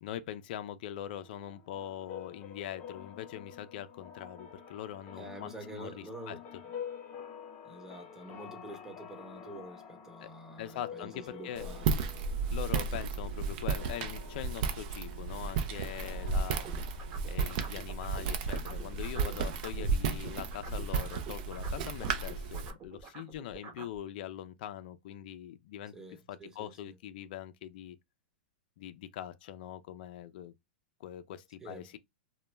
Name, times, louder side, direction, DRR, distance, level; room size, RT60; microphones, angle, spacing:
voice 1, 0.0-6.4 10.2-10.3 10.6-11.6 12.5-16.7 17.2-25.9 26.3-28.0 28.8-30.5 31.0-32.0, left 11 dB, 60° left, 0.3 m, -42 dB
sound 1, 1.1-17.8, left 7 dB, 30° left, 0.9 m, -49 dB
voice 2, 5.2-6.4 7.6-11.9 19.2-19.4 25.9-26.9 31.6-32.0, right 1 dB, 10° right, 0.7 m, -47 dB
Walk footsteps, 11.6-22.7, right 5 dB, 50° right, 0.5 m, -33 dB
sound 2, 16.3-19.9 20.2-24.0, right 5 dB, 35° right, 0.9 m, -48 dB
2.2 x 2.0 x 3.2 m
hypercardioid pair, 120°, 6 cm